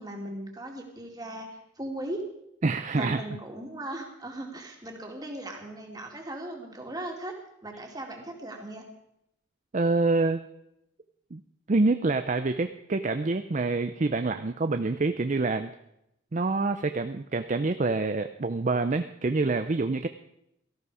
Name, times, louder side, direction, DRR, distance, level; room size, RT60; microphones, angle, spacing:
voice 1, 0.0-2.2 2.9-7.3 7.6-8.8, right 1 dB, 20° right, 1 dB, 2.4 m, -38 dB
voice 2, 2.6-3.2 9.7-10.4 11.3-11.4 11.7-15.7 16.3-20.1, right 3 dB, 35° right, 9 dB, 0.5 m, -26 dB
17.5 x 14.0 x 4.9 m, 0.81 s
head